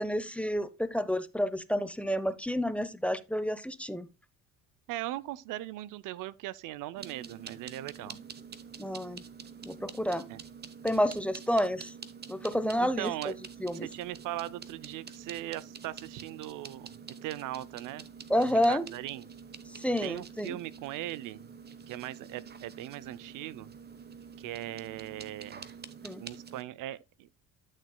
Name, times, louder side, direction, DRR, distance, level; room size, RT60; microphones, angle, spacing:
voice 1, 0.0-4.1 8.8-9.2 9.6-10.2 10.8-11.9 12.3-13.1 13.6-13.9 18.3-18.8 19.7-20.6 26.0-26.2, equal, 5° left, 0.6 m, -29 dB
voice 2, 4.9-8.2 10.3-10.4 12.8-13.4 13.7-16.9 17.2-18.0 18.4-19.3 20.0-21.5 21.9-23.7 24.4-25.7 26.2-27.3, right 15 dB, 75° right, 0.6 m, -39 dB
sound 1, 7.0-26.6, right 6 dB, 30° right, 0.9 m, -47 dB
12.0 x 6.5 x 2.2 m
supercardioid pair, 85°, 32 cm